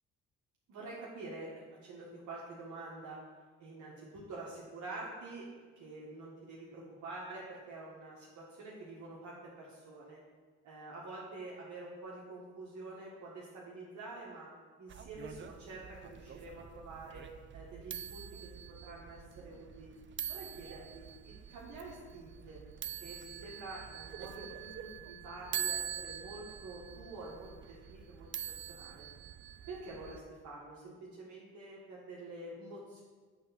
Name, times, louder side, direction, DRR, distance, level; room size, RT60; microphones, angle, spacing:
voice 1, 0.7-3.2 3.6-5.5 5.8-10.2 10.6-14.5 14.8-19.9 20.3-22.6 23.0-28.3 28.6-29.1 29.7-33.0, right 2 dB, 70° right, -5 dB, 1.4 m, -47 dB
sound 1, 14.9-30.2, right 10 dB, 40° right, 0.5 m, -45 dB
7.9 x 3.4 x 5.7 m, 1.5 s
cardioid pair, 90°, 30 cm